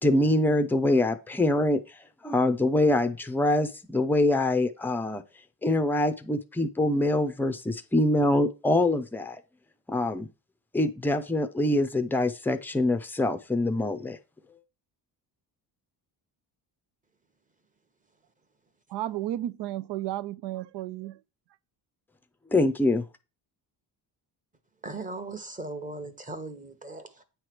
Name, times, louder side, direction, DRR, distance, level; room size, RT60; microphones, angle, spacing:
voice 1, 0.0-1.8 2.2-5.2 5.6-9.4 9.9-10.3 10.7-14.2 22.5-23.0, left 1 dB, 5° left, 0.5 m, -24 dB
voice 2, 18.9-21.2, right 13 dB, 65° right, 0.5 m, -33 dB
voice 3, 24.8-27.2, right 2 dB, 20° right, 1.0 m, -38 dB
8.7 x 3.3 x 6.0 m
cardioid pair, 115°, 43 cm